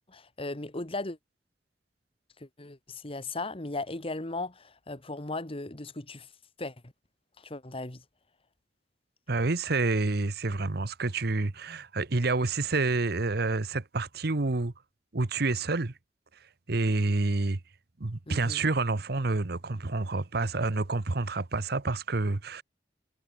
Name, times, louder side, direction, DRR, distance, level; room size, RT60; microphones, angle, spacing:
voice 1, 0.1-1.2 2.4-6.3 6.6-6.9 7.4-8.0 18.3-18.6, left 2 dB, 30° left, 1.7 m, -37 dB
voice 2, 9.3-14.7 15.1-15.9 16.4-17.6 18.0-22.6, right 3 dB, 65° right, 1.1 m, -28 dB
head